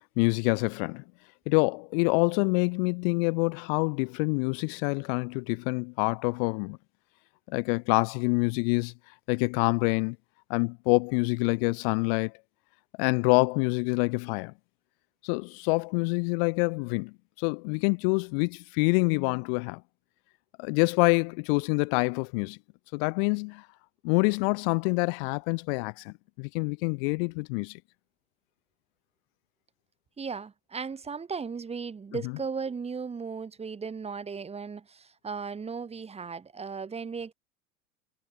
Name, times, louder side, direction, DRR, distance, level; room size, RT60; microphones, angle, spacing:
voice 1, 0.2-1.0 1.5-6.8 7.5-8.9 9.3-10.2 10.5-12.3 13.0-14.5 15.2-19.8 20.6-22.6 22.9-23.6 24.0-27.8, left 36 dB, 50° left, 1.3 m, -26 dB
voice 2, 30.2-37.3, right 5 dB, 15° right, 1.8 m, -36 dB
figure-of-eight pair, 80°, 37 cm